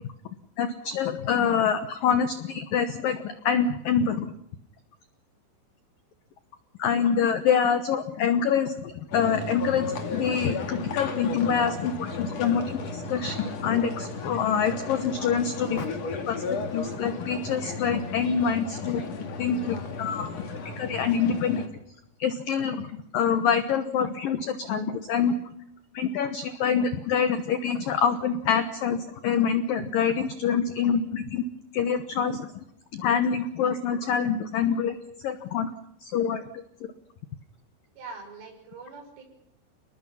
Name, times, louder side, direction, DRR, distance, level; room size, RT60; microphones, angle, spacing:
voice 1, 0.6-4.3 6.8-15.9 16.3-19.0 19.4-20.4 20.8-21.6 22.2-25.3 25.9-31.4 31.7-32.5 32.9-35.0 35.2-35.7 36.0-36.6, left 7 dB, 90° left, 9 dB, 1.9 m, -26 dB
sound 1, 9.1-21.7, left 4 dB, 45° left, 2.6 m, -34 dB
voice 2, 38.0-39.2, right 4 dB, 70° right, 3 dB, 8.7 m, -43 dB
29.5 x 20.5 x 5.6 m, 0.78 s
omnidirectional pair, 5.8 m